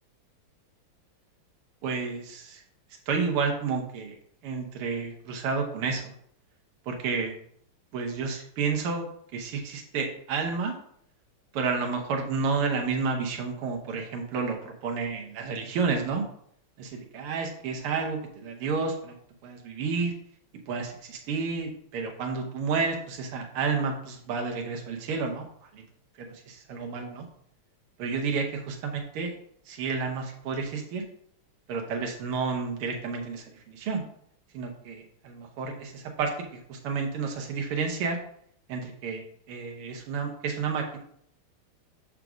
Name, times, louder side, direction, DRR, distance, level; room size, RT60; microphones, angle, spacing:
voice 1, 1.8-2.6 3.1-4.1 4.4-6.1 6.9-7.3 7.9-9.1 9.3-10.7 11.5-16.2 16.8-19.2 19.4-20.1 20.7-25.5 25.7-25.8 26.2-27.2 28.0-29.3 29.7-31.0 31.7-34.0 34.5-36.3 36.7-38.2 38.7-41.0, right 5 dB, 85° right, 2 dB, 1.9 m, -30 dB
6.6 x 3.6 x 6.1 m, 0.66 s
omnidirectional pair, 2.4 m